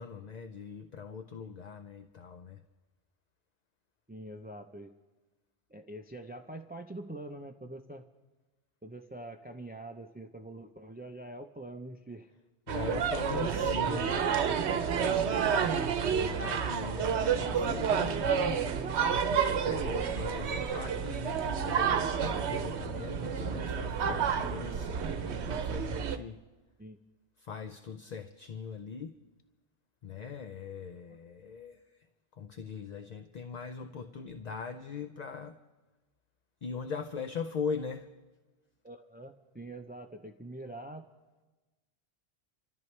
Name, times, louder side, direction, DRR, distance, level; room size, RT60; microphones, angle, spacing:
voice 1, 0.0-2.6 12.7-14.2 16.1-18.3 19.6-26.4 27.4-29.1 30.0-32.0 32.4-35.6 36.6-38.1, left 5 dB, 50° left, 8 dB, 0.6 m, -40 dB
voice 2, 4.1-4.9 5.7-8.0 8.8-12.3 12.9-15.4 16.8-17.0 17.4-19.3 26.8-27.0 38.8-41.1, right 1 dB, 10° right, 6 dB, 0.5 m, -44 dB
sound 1, 12.7-26.2, right 7 dB, 80° right, 1.0 m, -30 dB
28.5 x 13.5 x 3.3 m, 1.2 s
omnidirectional pair, 1.1 m